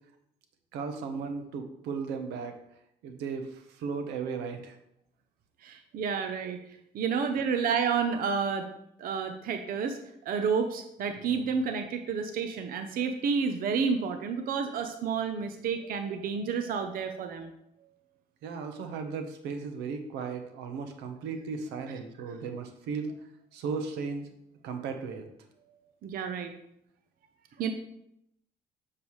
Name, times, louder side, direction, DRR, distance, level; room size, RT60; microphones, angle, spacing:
voice 1, 0.7-2.6 3.0-4.8 18.4-23.1 23.5-24.3 24.6-25.3, right 5 dB, 90° right, 7 dB, 1.0 m, -36 dB
voice 2, 5.6-6.6 6.9-8.7 9.0-17.5 26.0-26.5 27.6-27.7, right 6 dB, 60° right, 7 dB, 0.7 m, -30 dB
7.2 x 6.6 x 3.1 m, 0.76 s
cardioid pair, 110°, 17 cm